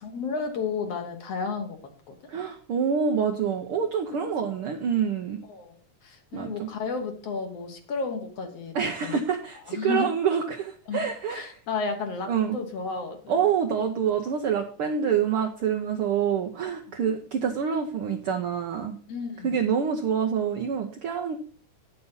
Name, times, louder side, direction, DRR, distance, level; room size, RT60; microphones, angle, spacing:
voice 1, 0.0-1.8 2.1-2.2 5.5-5.8 6.0-9.2 9.7-10.1 10.9-13.4 19.1-19.6, left 4 dB, 60° left, 5 dB, 2.2 m, -32 dB
voice 2, 2.3-5.4 6.3-6.7 8.7-11.4 12.3-12.6 13.3-19.0 19.4-21.4, right 7 dB, 75° right, 2 dB, 1.3 m, -26 dB
9.3 x 6.8 x 5.5 m, 0.43 s
omnidirectional pair, 3.5 m